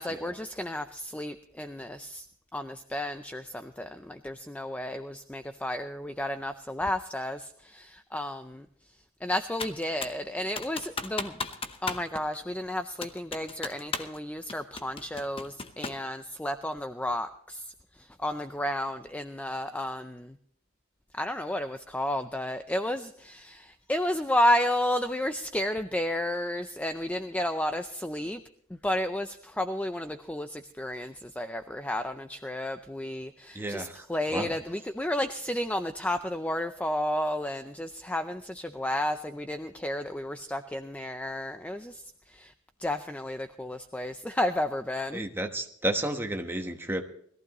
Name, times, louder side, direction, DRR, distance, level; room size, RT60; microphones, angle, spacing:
voice 1, 0.0-2.3 2.5-8.7 9.2-11.4 11.8-20.4 21.1-28.4 28.7-42.5 42.8-45.2, left 1 dB, 5° left, 8 dB, 0.4 m, -32 dB
Computer keyboard, 9.6-10.2 10.6-12.1 12.3-12.4 13.0-14.2 14.5-16.1, left 4 dB, 25° left, 0.9 m, -36 dB
voice 2, 33.5-34.0 34.3-34.5 45.1-47.0, right 1 dB, 10° right, 4 dB, 1.2 m, -31 dB
21.0 x 14.5 x 3.0 m, 0.64 s
head